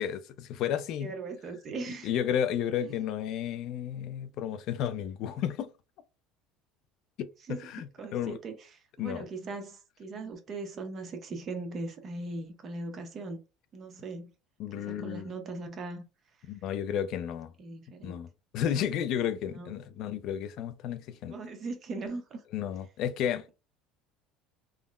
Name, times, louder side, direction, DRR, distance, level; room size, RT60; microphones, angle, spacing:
voice 1, 0.0-1.1 2.0-5.7 7.2-7.8 8.1-8.4 9.0-9.3 14.6-15.3 16.5-17.5 18.0-18.3 18.5-21.4 22.5-23.5, left 9 dB, 60° left, 0.4 m, -32 dB
voice 2, 1.0-2.1 2.8-2.9 7.4-7.7 8.0-13.4 13.7-14.3 14.7-16.0 17.6-18.2 19.5-19.7 21.3-22.4, right 3 dB, 40° right, 0.8 m, -39 dB
3.6 x 2.0 x 2.3 m
supercardioid pair, 120°, 0 cm